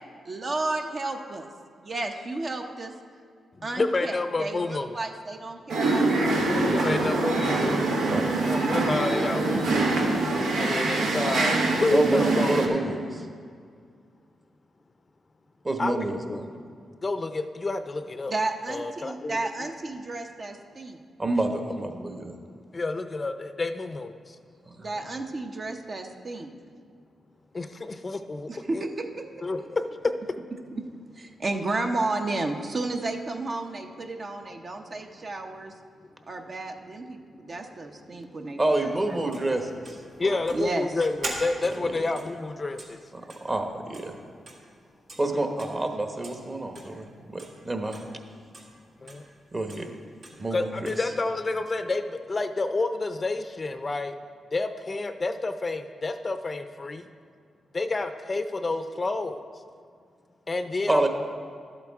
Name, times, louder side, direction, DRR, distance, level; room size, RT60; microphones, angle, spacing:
voice 1, 0.2-1.5 1.8-2.9 3.6-6.9 18.3-21.0 24.8-26.5 28.5-29.2 29.6-29.7 30.7-30.8 31.2-35.7 36.3-39.4 40.5-41.0, right 2 dB, 50° right, 4 dB, 0.8 m, -32 dB
voice 2, 3.8-4.9 6.7-7.8 8.5-10.0 10.6-11.6 11.8-12.9 15.8-16.4 17.0-18.3 18.7-19.5 22.7-24.1 27.5-28.8 29.4-29.8 40.2-43.0 49.0-49.2 50.5-52.0 52.3-54.1 54.5-57.0 57.7-59.4 60.5-61.1, left 3 dB, 35° left, 9 dB, 0.5 m, -29 dB
sound 1, 5.7-12.7, right 2 dB, 90° right, 1.0 m, -24 dB
voice 3, 8.1-8.5 11.9-13.1 15.6-16.5 21.2-22.4 24.8-24.9 38.6-40.0 40.2-40.4 41.6-41.7 43.1-44.2 45.2-48.0 49.5-49.9 50.4-51.1 60.9-61.1, right 2 dB, 30° right, 5 dB, 1.1 m, -28 dB
sound 2, 39.3-44.8 45.1-45.2 45.6-45.8 46.2-46.4 46.8-46.9 47.4-47.5 47.9-48.1 48.5-48.7 49.1-49.2 49.7-49.9 50.2-50.4 50.9-51.0, right 2 dB, 75° right, 1.7 m, -41 dB
12.0 x 8.2 x 3.6 m, 2.2 s
cardioid pair, 65°, 0 cm